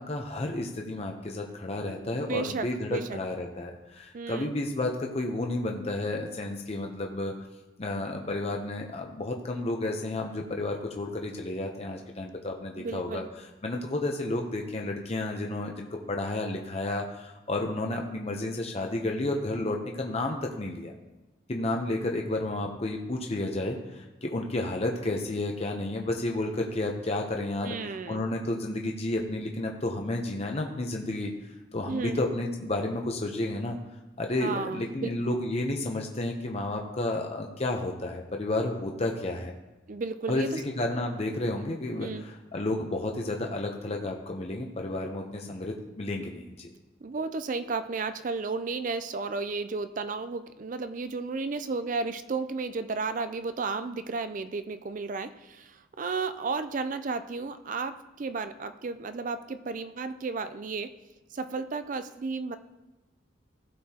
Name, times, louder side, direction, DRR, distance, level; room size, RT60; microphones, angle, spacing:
voice 1, 0.0-7.3 7.8-13.2 13.6-20.9 21.5-31.3 31.7-33.8 34.2-39.5 40.3-46.7, left 2 dB, 30° left, 2 dB, 0.7 m, -31 dB
voice 2, 1.7-3.2 4.1-4.5 12.8-13.3 27.6-28.2 31.8-32.2 34.4-35.1 39.9-40.6 42.0-42.2 47.0-60.9 61.3-62.6, right 4 dB, 40° right, 10 dB, 0.4 m, -33 dB
15.5 x 6.6 x 2.9 m, 1.1 s
head